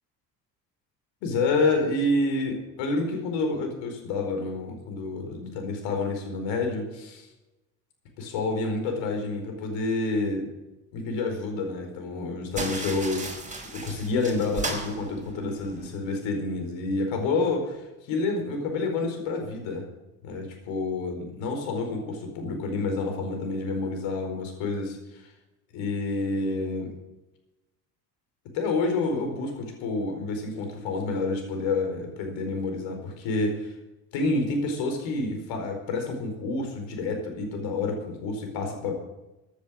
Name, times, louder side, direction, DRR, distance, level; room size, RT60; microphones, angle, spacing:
voice 1, 1.2-7.3 8.2-10.5 10.9-13.2 13.7-19.8 20.2-25.2 25.7-26.9 28.5-33.7 34.1-38.9, left 3 dB, 65° left, 4 dB, 4.7 m, -28 dB
sound 1, 12.5-15.9, right 2 dB, 15° right, 5.1 m, -35 dB
15.5 x 10.0 x 7.6 m, 1.0 s
hypercardioid pair, 55°, 48 cm